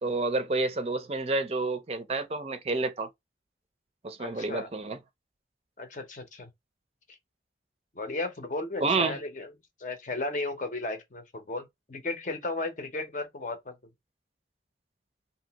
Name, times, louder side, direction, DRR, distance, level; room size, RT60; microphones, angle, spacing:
voice 1, 0.0-3.1 4.0-5.0 8.8-9.2, right 3 dB, 35° right, 0.5 m, -29 dB
voice 2, 4.2-4.7 5.8-6.5 7.1-7.2 7.9-9.5 9.8-13.8, left 2 dB, 45° left, 0.7 m, -35 dB
2.9 x 2.7 x 2.8 m
head